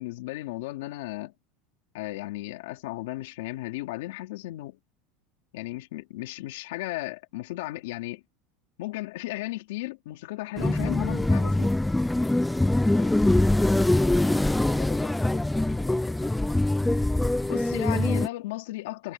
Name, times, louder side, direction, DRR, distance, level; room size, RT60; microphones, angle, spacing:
voice 1, 0.0-1.3 1.9-4.8 5.5-8.2 8.8-11.7 17.5-19.1, left 18 dB, 80° left, 3.5 m, -35 dB
sound 1, 10.6-18.3, left 1 dB, 5° left, 0.4 m, -23 dB
voice 2, 12.9-16.8 17.9-18.2, left 9 dB, 25° left, 7.0 m, -43 dB
supercardioid pair, 165°, 0 cm